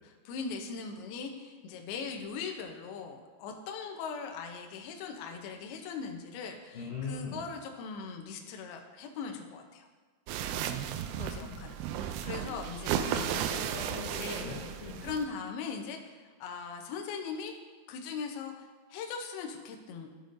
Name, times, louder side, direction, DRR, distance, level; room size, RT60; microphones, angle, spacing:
voice 1, 0.0-9.9 11.2-13.3 14.2-14.5 15.0-17.6 17.9-20.1, left 5 dB, 75° left, 3 dB, 2.4 m, -40 dB
voice 2, 6.7-7.4 10.7-11.7 12.4-12.6 12.9-15.1, left 4 dB, 30° left, -10 dB, 2.8 m, -41 dB
sound 1, 10.3-15.3, right 10 dB, 85° right, 2.3 m, -34 dB
12.5 x 6.7 x 2.6 m, 1.4 s
omnidirectional pair, 4.9 m